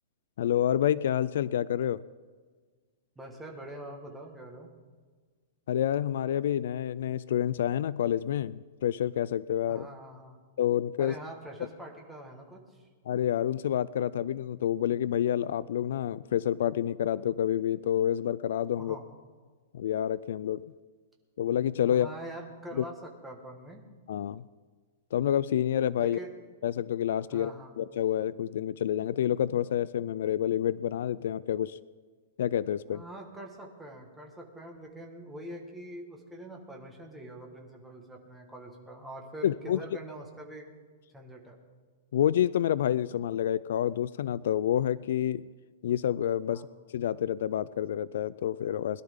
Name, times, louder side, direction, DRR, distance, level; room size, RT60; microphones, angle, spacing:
voice 1, 0.4-2.0 5.7-9.9 10.6-11.2 13.1-19.0 19.7-20.6 21.4-22.1 22.8-22.9 24.1-24.4 25.1-26.2 26.6-31.8 32.4-33.0 39.4-39.8 42.1-45.4 45.8-46.7 46.9-49.0, left 10 dB, 60° left, 18 dB, 0.3 m, -28 dB
voice 2, 3.1-4.7 9.7-10.4 11.0-12.9 18.8-19.0 21.9-23.8 26.0-26.3 27.3-27.7 32.9-40.7 41.1-41.6 46.5-46.7, right 1 dB, 5° right, 0 dB, 1.5 m, -44 dB
21.0 x 11.5 x 3.7 m, 1.5 s
hypercardioid pair, 170°, 0 cm